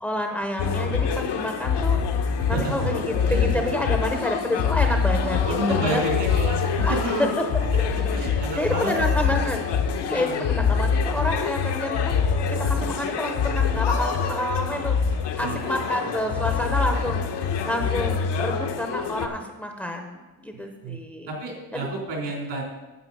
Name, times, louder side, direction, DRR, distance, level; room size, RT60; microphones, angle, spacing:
voice 1, 0.0-6.0 6.7-7.3 8.2-9.6 10.0-17.2 17.6-21.3 21.7-21.9, left 1 dB, 5° left, 3 dB, 0.7 m, -29 dB
sound 1, 0.6-19.3, left 6 dB, 65° left, 1.1 m, -25 dB
voice 2, 2.4-2.9 3.3-3.6 5.5-7.3 7.9-9.3 9.9-10.5 14.9-15.9 16.3-16.4 20.8-21.0 21.3-22.6, right 2 dB, 75° right, -1 dB, 3.5 m, -31 dB
9.5 x 7.8 x 5.4 m, 1.2 s
cardioid pair, 150°, 43 cm